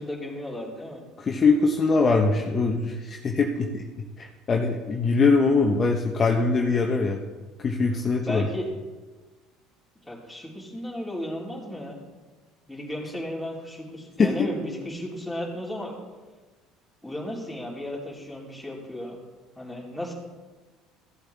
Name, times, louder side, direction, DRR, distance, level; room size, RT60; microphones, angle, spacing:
voice 1, 0.0-1.0 8.2-8.7 10.1-12.0 12.7-16.0 17.0-19.2 19.6-20.1, left 1 dB, ahead, -5 dB, 3.5 m, -35 dB
voice 2, 1.2-3.8 4.2-7.2 7.6-8.5 14.2-14.5, left 4 dB, 35° left, 1 dB, 1.0 m, -22 dB
15.0 x 8.0 x 3.5 m, 1.3 s
hypercardioid pair, 70°, 0 cm